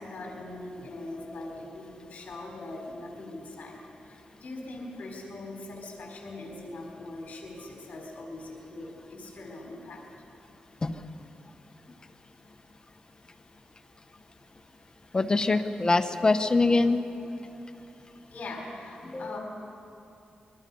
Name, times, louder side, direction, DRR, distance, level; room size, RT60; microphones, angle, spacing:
voice 1, 0.0-3.8 4.1-10.0 17.7-17.9 18.3-19.4, left 2 dB, 65° left, 0 dB, 4.2 m, -41 dB
voice 2, 15.1-17.0 19.0-19.3, left 3 dB, 30° left, 8 dB, 1.1 m, -24 dB
26.0 x 22.5 x 5.6 m, 2.8 s
wide cardioid pair, 100°, 3 cm